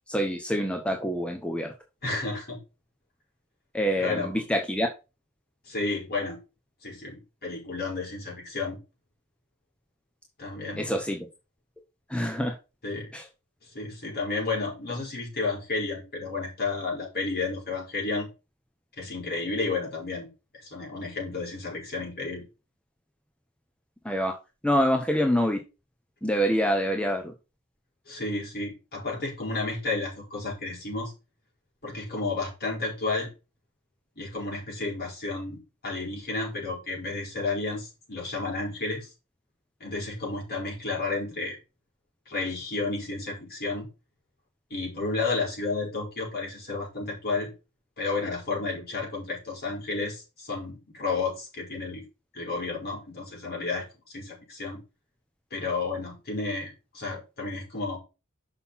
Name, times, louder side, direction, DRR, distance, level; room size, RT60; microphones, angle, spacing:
voice 1, 0.1-1.7 3.7-4.9 10.8-11.3 12.1-12.5 13.1-13.2 24.0-24.4 24.6-25.6 26.2-27.3, equal, 5° left, 3 dB, 1.0 m, -26 dB
voice 2, 2.0-2.6 4.0-4.3 5.7-6.4 6.8-8.8 10.4-11.0 12.8-13.1 13.6-18.3 19.0-20.3 20.5-22.4 28.1-31.1 31.8-33.3 34.2-39.1 39.8-41.6 42.3-43.9 44.7-47.5 48.0-52.0 52.3-54.8 55.5-58.0, left 3 dB, 45° left, -2 dB, 5.5 m, -32 dB
6.8 x 5.8 x 5.7 m, 0.29 s
head